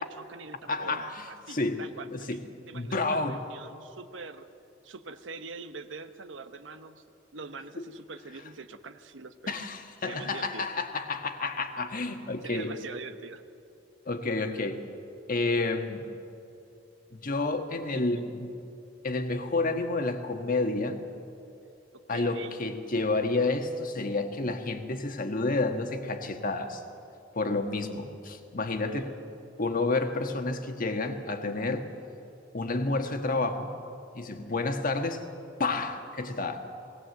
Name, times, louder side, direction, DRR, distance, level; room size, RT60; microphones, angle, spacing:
voice 1, 0.0-2.4 2.7-4.5 4.8-7.0 7.3-9.5 10.0-10.7 12.4-13.4 18.2-18.3 21.9-22.5 28.8-29.2, right 4 dB, 85° right, 9 dB, 1.0 m, -44 dB
voice 2, 0.7-1.8 2.1-2.4 2.7-3.4 7.8-7.9 9.5-12.7 14.1-14.8 15.3-16.1 17.1-18.5 19.0-21.0 22.1-26.8 27.3-29.1 29.6-31.9 32.5-33.7 34.1-35.2 35.6-36.7, left 3 dB, 50° left, 6 dB, 1.5 m, -30 dB
19.5 x 18.5 x 7.9 m, 2.7 s
head